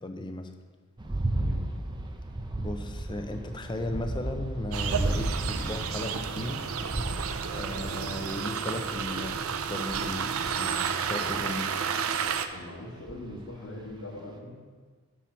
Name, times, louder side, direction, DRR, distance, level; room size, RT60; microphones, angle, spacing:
voice 1, 0.0-0.5 2.6-6.7 7.5-11.7, left 1 dB, 20° left, 6 dB, 0.6 m, -36 dB
sound 1, 1.0-12.4 13.1-13.5 13.9-14.0, right 1 dB, 20° right, 0.5 m, -35 dB
voice 2, 1.3-1.7 12.5-14.6, left 1 dB, 85° left, -8 dB, 1.7 m, -41 dB
sound 2, 4.7-12.5, right 7 dB, 75° right, 0.5 m, -31 dB
7.5 x 5.6 x 5.7 m, 1.5 s
head